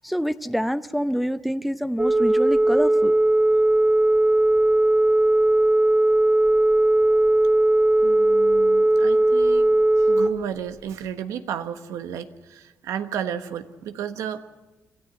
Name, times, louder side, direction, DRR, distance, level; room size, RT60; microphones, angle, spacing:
voice 1, 0.0-3.2, equal, ahead, 11 dB, 0.7 m, -26 dB
Telephone, 2.0-10.3, right 1 dB, 15° right, 1.4 m, -18 dB
voice 2, 8.0-14.4, right 9 dB, 80° right, 10 dB, 1.3 m, -33 dB
26.5 x 14.0 x 8.2 m, 1.1 s
cardioid pair, 90°, 5 cm